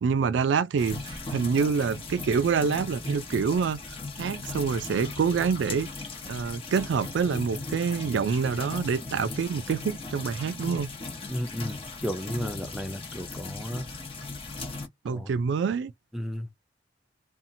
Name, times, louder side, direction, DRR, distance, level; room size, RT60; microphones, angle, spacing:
voice 1, 0.0-5.9 6.3-10.9 15.0-15.9, right 6 dB, 85° right, 0.3 m, -26 dB
sound 1, 0.8-14.9, left 3 dB, 30° left, 0.8 m, -38 dB
voice 2, 11.3-13.9 15.1-15.3 16.1-16.5, equal, ahead, 0.5 m, -33 dB
2.8 x 2.4 x 2.6 m
head